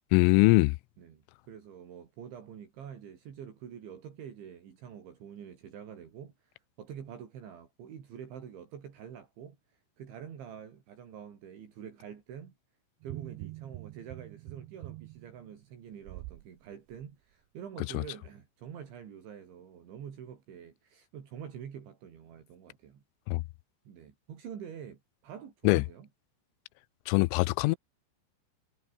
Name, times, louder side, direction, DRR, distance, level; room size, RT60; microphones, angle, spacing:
voice 1, 0.1-0.8 17.9-18.0 23.3-23.4 25.6-25.8 27.1-27.8, left 23 dB, 90° left, 3.2 m, -22 dB
voice 2, 1.0-12.5 13.0-23.0 23.9-26.1, right 8 dB, 65° right, 5.9 m, -46 dB
sound 1, 13.0-16.5 16.9-17.1, right 21 dB, 90° right, 2.5 m, -45 dB
omnidirectional pair, 5.7 m